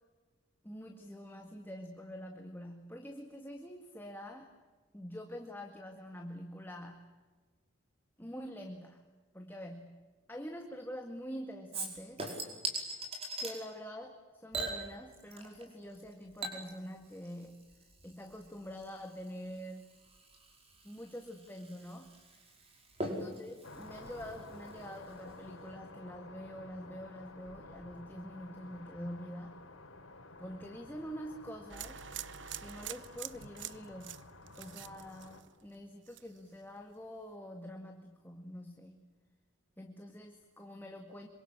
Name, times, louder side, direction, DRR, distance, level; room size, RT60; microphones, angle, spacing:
voice 1, 0.6-4.5 4.9-7.1 8.2-9.0 9.3-10.0 10.3-12.2 13.4-17.6 18.0-19.8 20.8-22.1 23.0-29.6 30.4-32.0 32.6-34.2 34.6-39.0 39.8-41.3, equal, 10° left, 3 dB, 1.9 m, -46 dB
Chink clink / Liquid, 11.7-13.6 14.5-15.7 15.9-25.0 25.3-25.4, right 2 dB, 30° right, 5.3 m, -42 dB
sound 1, 23.6-35.4, left 2 dB, 80° left, 3.8 m, -52 dB
sound 2, 31.7-35.7 36.1-36.5, right 11 dB, 60° right, 0.9 m, -45 dB
27.0 x 24.5 x 8.9 m, 1.3 s
head